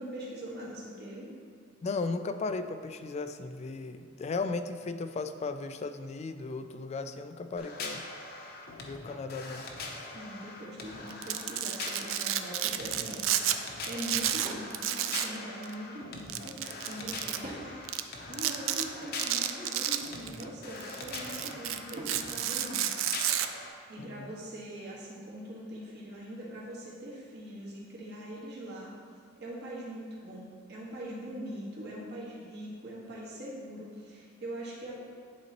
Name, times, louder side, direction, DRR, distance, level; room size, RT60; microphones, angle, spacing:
voice 1, 0.0-1.3 10.1-17.7 18.3-22.9 23.9-28.9 29.3-35.0, equal, 60° right, -5 dB, 1.5 m, -42 dB
voice 2, 1.8-8.0 8.8-9.7 24.0-24.3, left 3 dB, 35° left, 9 dB, 0.3 m, -36 dB
sound 1, 7.6-23.7, left 3 dB, 55° left, 0.8 m, -42 dB
Domestic sounds home sounds, 11.1-13.6 13.8-15.4 15.6-15.7 16.3-17.4 17.9-18.0 18.3-18.8 19.2-20.4 20.8-23.5, right 12 dB, 85° right, 0.4 m, -31 dB
Drawer open or close / Wood, 13.7-14.7 16.4-17.7 18.2-19.4 20.7-22.2, right 1 dB, 45° right, 0.9 m, -48 dB
10.5 x 4.1 x 3.0 m, 2.1 s
head